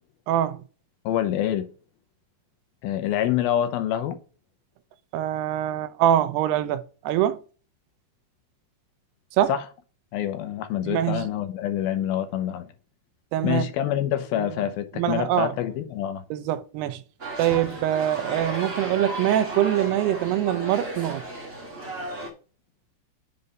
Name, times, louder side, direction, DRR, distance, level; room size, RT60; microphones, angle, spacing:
voice 1, 0.3-0.6 5.1-7.4 9.3-9.5 10.8-11.3 13.3-13.7 14.4-15.5 16.3-17.0 17.4-21.2, right 12 dB, 90° right, 2.8 m, -24 dB
voice 2, 1.1-1.7 2.8-4.2 9.5-9.6 10.1-12.7 13.4-16.2, left 11 dB, 75° left, 2.5 m, -26 dB
sound 1, 17.2-22.3, right 1 dB, 30° right, 1.0 m, -34 dB
7.8 x 4.1 x 5.1 m
omnidirectional pair, 4.6 m